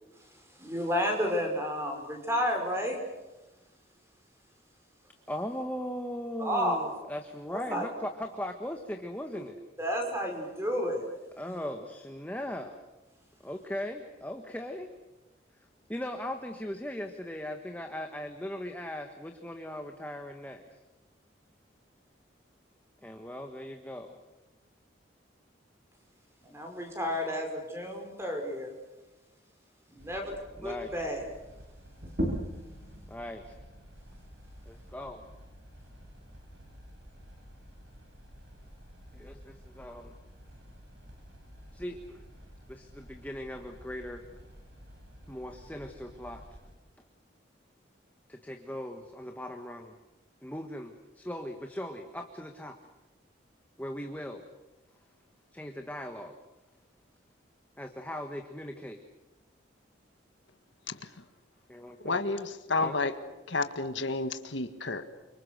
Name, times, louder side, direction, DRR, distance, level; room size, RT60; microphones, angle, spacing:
voice 1, 0.2-3.0 6.4-7.0 7.7-7.9 9.8-11.1 11.5-11.6 26.4-28.7 29.9-31.2, equal, 15° right, 5.4 m, -31 dB
voice 2, 5.3-9.6 11.4-12.8 13.4-14.9 15.9-20.8 23.0-24.2 27.9-28.0 30.6-30.9 33.1-33.6 34.6-35.2 39.1-40.1 41.7-42.3 42.7-44.2 45.3-46.4 48.3-50.0 50.4-52.8 53.8-54.4 55.5-56.4 57.8-59.0 61.7-62.2 62.8-63.0, left 1 dB, 10° left, 1.4 m, -39 dB
sound 1, 30.0-46.7, equal, 65° right, 7.5 m, -52 dB
sound 2, 32.0-37.2, equal, 50° right, 7.8 m, -39 dB
voice 3, 62.0-63.1 63.5-65.1, left 3 dB, 75° left, 1.7 m, -30 dB
29.0 x 25.5 x 6.7 m
head